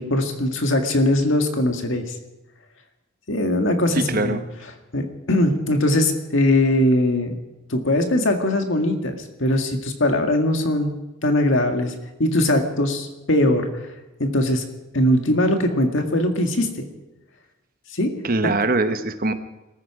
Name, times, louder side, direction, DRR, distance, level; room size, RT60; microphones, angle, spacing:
voice 1, 0.0-2.0 3.3-4.4 4.9-7.3 7.7-11.0 11.2-11.9 12.2-13.7 14.2-14.7 14.9-16.7 17.9-18.1 18.4-18.5, left 1 dB, 65° left, 5 dB, 1.9 m, -20 dB
voice 2, 3.9-4.4 18.2-19.3, right 3 dB, 45° right, 9 dB, 1.0 m, -22 dB
20.5 x 14.0 x 4.9 m, 1.0 s
head